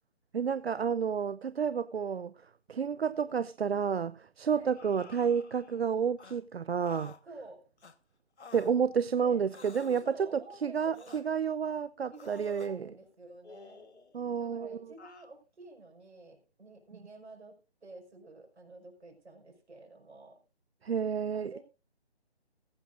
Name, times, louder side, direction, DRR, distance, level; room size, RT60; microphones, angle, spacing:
voice 1, 0.3-2.3 2.7-7.1 8.5-12.8 14.1-14.9 20.8-21.6, right 7 dB, 65° right, 0.6 m, -30 dB
sound 1, 4.7-5.8 6.2-6.4 6.8-7.2 7.8-8.0 8.4-8.8 9.5-10.1 10.9-11.2 12.1-12.7 13.4-14.2 15.0-15.3, left 4 dB, 90° left, 1.4 m, -52 dB
voice 2, 7.3-7.6 9.2-9.4 9.8-11.2 12.1-13.9 14.4-17.6 17.8-20.4 21.3-21.6, right 2 dB, 85° right, 5.3 m, -50 dB
15.5 x 15.0 x 2.5 m
hypercardioid pair, 175°, 33 cm